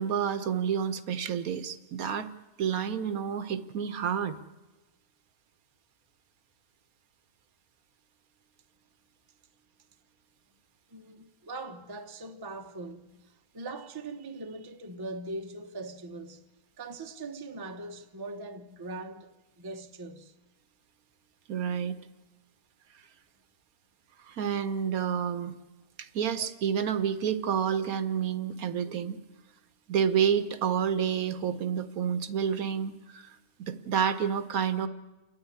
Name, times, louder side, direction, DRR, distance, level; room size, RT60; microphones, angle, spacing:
voice 1, 0.0-2.3 2.6-4.4 21.5-22.0 24.2-25.5 26.0-29.2 29.9-34.9, right 8 dB, 65° right, 1.2 m, -29 dB
voice 2, 10.9-16.4 16.8-20.3 22.2-22.3, right 2 dB, 20° right, 0.7 m, -41 dB
28.5 x 9.7 x 9.8 m
omnidirectional pair, 1.7 m